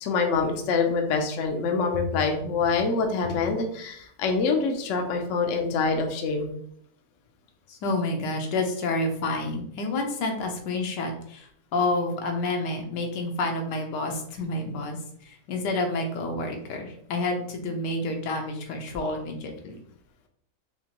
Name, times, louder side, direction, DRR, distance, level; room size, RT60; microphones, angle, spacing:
voice 1, 0.0-6.5, left 4 dB, 65° left, 4 dB, 0.8 m, -25 dB
voice 2, 7.7-15.0 15.2-19.8, left 2 dB, 80° left, 3 dB, 1.4 m, -29 dB
4.4 x 2.9 x 2.9 m, 0.66 s
omnidirectional pair, 1.8 m